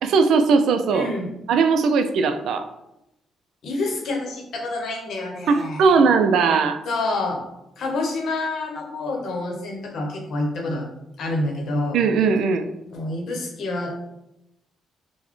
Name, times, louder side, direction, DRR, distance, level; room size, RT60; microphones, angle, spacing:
voice 1, 0.0-1.1 1.5-2.7 5.5-6.8 11.9-12.7, right 5 dB, 75° right, 8 dB, 0.3 m, -19 dB
voice 2, 0.9-1.3 3.6-5.9 6.9-7.4 7.8-10.8 11.2-12.0 12.9-14.0, left 2 dB, 70° left, 1 dB, 0.8 m, -27 dB
3.9 x 2.1 x 3.1 m, 0.88 s
cardioid pair, 90°, 0 cm